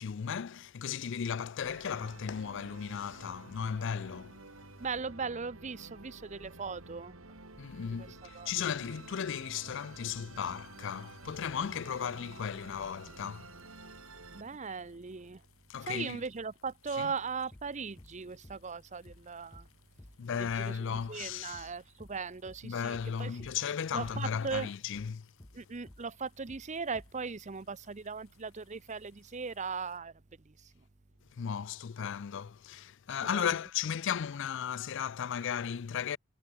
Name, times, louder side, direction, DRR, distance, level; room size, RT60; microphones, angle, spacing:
voice 1, 0.0-4.4 7.6-13.5 15.7-16.2 16.9-17.1 20.2-21.7 22.6-25.3 31.4-36.2, left 7 dB, 60° left, 0.4 m, -35 dB
Musical instrument, 1.6-14.4, right 3 dB, 75° right, 3.6 m, -51 dB
voice 2, 4.8-7.2 8.0-8.1 8.3-8.5 14.3-15.4 15.9-19.7 20.4-23.3 23.9-24.7 25.5-30.1 30.5-30.6 33.3-33.5, right 5 dB, 35° right, 0.7 m, -38 dB
sound 1, 10.6-30.0, left 6 dB, 85° left, 7.3 m, -69 dB
sound 2, 17.5-17.7 18.0-18.2 18.4-18.6 19.1-19.3 19.5-19.7 20.0-20.2 20.4-20.6 20.9-21.1 21.5-21.7 22.0-22.2 22.5-22.7 22.9-23.1 23.4-23.6 24.0-24.2 24.5-24.7 24.9-25.1 25.4-25.6 25.9-26.1 26.5-26.7 26.9-27.1, left 1 dB, 20° left, 1.0 m, -53 dB
head